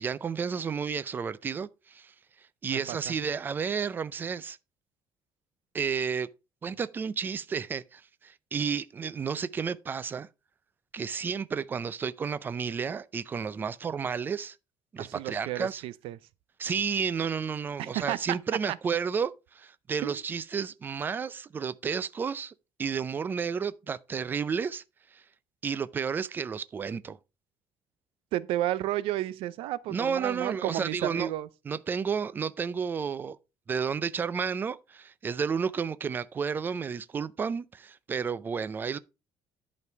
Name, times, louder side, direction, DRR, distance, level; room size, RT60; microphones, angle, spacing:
voice 1, 0.0-2.1 2.6-4.6 5.7-6.3 6.6-10.3 10.9-14.6 14.9-15.8 16.6-22.5 22.8-24.8 25.1-25.2 25.6-27.2 29.9-31.3 31.7-33.4 33.7-39.0, right 6 dB, 20° right, 0.4 m, -31 dB
voice 2, 2.7-3.1 15.0-16.2 17.8-18.4 20.0-20.2 28.3-31.5, right 14 dB, 85° right, 0.7 m, -32 dB
11.0 x 5.2 x 4.5 m
cardioid pair, 175°, 9 cm